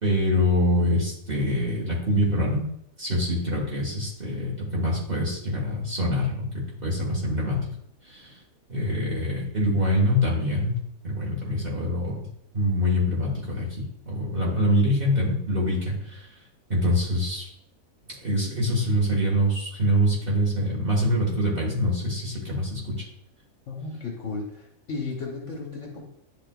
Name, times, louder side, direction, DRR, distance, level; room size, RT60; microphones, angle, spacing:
voice 1, 0.0-2.6 3.0-7.7 8.0-8.4 8.7-10.8 11.0-12.2 12.5-16.3 16.7-17.5 18.2-23.1, equal, 40° right, -4 dB, 1.7 m, -25 dB
voice 2, 23.7-26.0, left 3 dB, 60° left, -2 dB, 1.4 m, -34 dB
10.0 x 4.3 x 2.4 m, 0.73 s
omnidirectional pair, 1.5 m